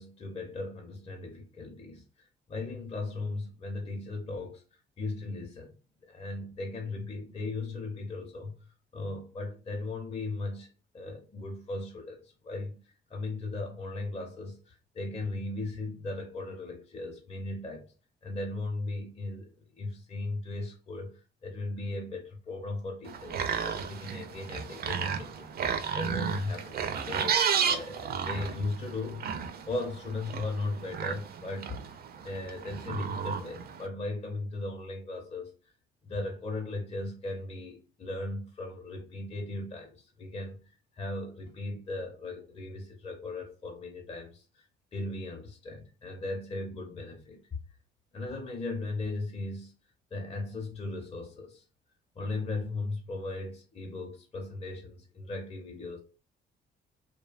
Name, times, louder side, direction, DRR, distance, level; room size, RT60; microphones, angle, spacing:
voice 1, 0.0-5.7 6.1-8.5 8.9-10.7 10.9-17.8 18.2-31.8 32.2-35.5 36.0-44.7 44.9-47.4 48.1-49.7 50.1-51.6 52.2-56.0, left 2 dB, 30° left, 0.6 m, -37 dB
sound 1, 23.0-33.9, right 7 dB, 50° right, 0.4 m, -33 dB
2.7 x 2.1 x 2.3 m
cardioid pair, 90°, 20 cm